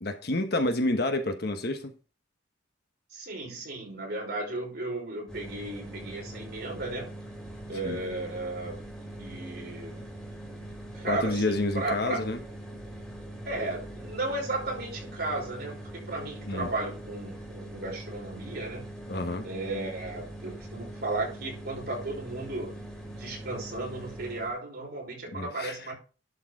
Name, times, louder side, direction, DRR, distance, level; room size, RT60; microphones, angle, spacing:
voice 1, 0.0-1.9 7.8-8.0 11.0-12.4 16.5-16.7 19.1-19.5 25.3-25.8, left 2 dB, 55° left, 1.3 m, -29 dB
voice 2, 3.1-7.2 7.7-8.8 9.2-10.0 10.9-12.3 13.5-18.9 19.4-22.8 23.2-25.9, right 2 dB, 55° right, 5.4 m, -35 dB
sound 1, 5.3-24.6, right 1 dB, 5° left, 2.8 m, -42 dB
11.5 x 4.8 x 4.8 m
head